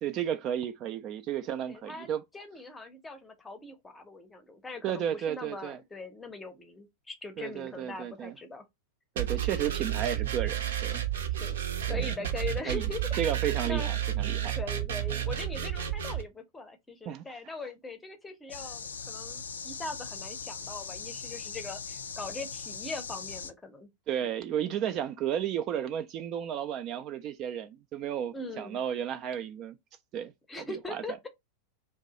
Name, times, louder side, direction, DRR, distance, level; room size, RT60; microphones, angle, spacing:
voice 1, 0.0-2.2 4.8-5.8 7.4-8.3 9.2-11.0 11.9-12.3 12.7-12.8 13.2-14.5 17.1-17.5 24.1-29.7 30.1-30.3 30.7-31.0, right 9 dB, 35° right, 0.3 m, -33 dB
voice 2, 1.7-8.6 11.4-13.3 13.6-13.9 14.6-23.9 28.3-28.8 30.5-31.3, left 3 dB, 10° left, 0.7 m, -41 dB
sound 1, 9.2-16.2, right 11 dB, 65° right, 0.6 m, -31 dB
sound 2, 18.5-23.5, left 5 dB, 70° left, 0.3 m, -40 dB
2.6 x 2.2 x 3.9 m
figure-of-eight pair, 90°, 0 cm